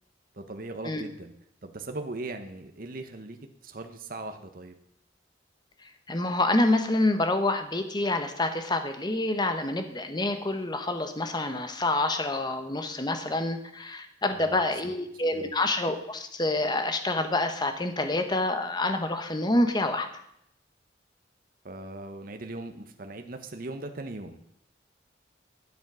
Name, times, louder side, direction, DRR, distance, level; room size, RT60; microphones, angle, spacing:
voice 1, 0.3-1.3 1.6-3.4 3.6-4.8 14.3-14.9 15.3-15.5 21.6-24.5, right 2 dB, 50° right, 6 dB, 1.0 m, -39 dB
voice 2, 5.8-20.1, left 2 dB, 25° left, 8 dB, 1.0 m, -27 dB
12.0 x 7.3 x 6.1 m, 0.75 s
head